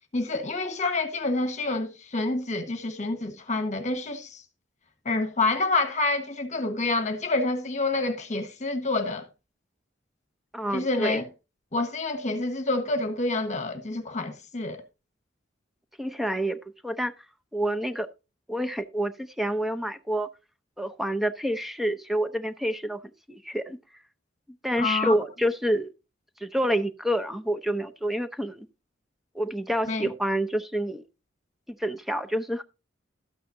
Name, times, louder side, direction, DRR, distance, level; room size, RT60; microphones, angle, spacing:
voice 1, 0.1-4.4 5.0-9.2 10.7-11.2 11.7-14.8 24.8-25.1 29.9-30.1, left 2 dB, 40° left, 1.3 m, -28 dB
voice 2, 10.5-11.2 16.0-17.1 17.5-18.1 18.5-20.3 20.8-23.0 23.3-23.8 24.6-25.9 26.4-28.7 29.3-31.0 31.8-32.6, equal, ahead, 0.7 m, -28 dB
13.0 x 8.9 x 2.6 m
head